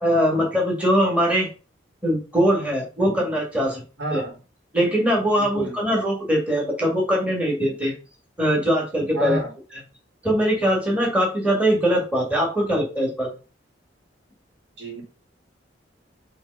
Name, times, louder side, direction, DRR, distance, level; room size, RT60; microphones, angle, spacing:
voice 1, 0.0-1.5 2.0-3.8 4.1-4.2 4.7-7.9 8.4-9.4 10.2-13.3, equal, 5° right, -2 dB, 2.1 m, -21 dB
voice 2, 4.0-4.4 5.4-5.7 9.1-9.5 14.8-15.0, right 1 dB, 75° right, 1 dB, 2.4 m, -29 dB
7.0 x 3.5 x 5.5 m, 0.34 s
head